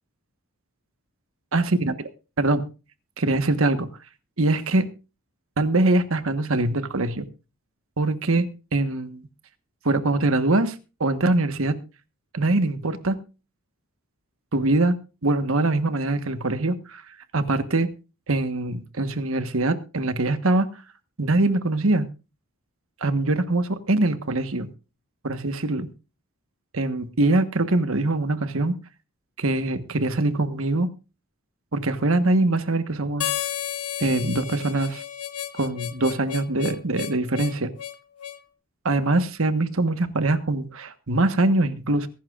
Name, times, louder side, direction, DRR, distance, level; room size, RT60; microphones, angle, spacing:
voice 1, 1.5-1.9 2.4-2.7 3.2-3.9 4.4-4.9 5.6-7.3 8.0-9.2 9.8-10.7 11.0-11.8 12.3-13.2 14.5-15.0 15.2-17.0 17.3-17.9 18.3-20.7 21.2-22.1 23.0-24.7 25.2-25.9 26.7-28.7 29.4-30.9 31.7-33.3 34.0-35.0 35.6-37.7 38.8-42.1, right 2 dB, 70° right, 10 dB, 1.3 m, -23 dB
Harmonica, 33.2-38.4, left 11 dB, 85° left, 1.0 m, -32 dB
23.0 x 11.5 x 2.5 m, 0.31 s
head